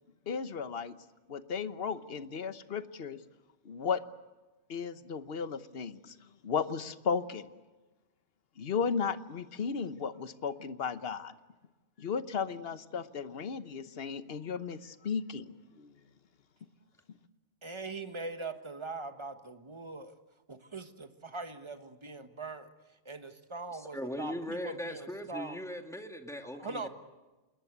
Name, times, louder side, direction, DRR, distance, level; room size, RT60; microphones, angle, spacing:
voice 1, 0.3-1.0 1.3-3.2 3.6-4.0 4.7-6.1 6.4-7.5 8.6-11.3 12.0-15.9, left 6 dB, 55° left, 12 dB, 1.2 m, -35 dB
voice 2, 17.6-20.1 20.5-22.7 23.0-25.6 26.6-26.9, right 3 dB, 25° right, 9 dB, 1.4 m, -41 dB
voice 3, 23.7-26.9, left 1 dB, ahead, 5 dB, 2.0 m, -39 dB
27.0 x 21.0 x 8.1 m, 1.2 s
omnidirectional pair, 1.2 m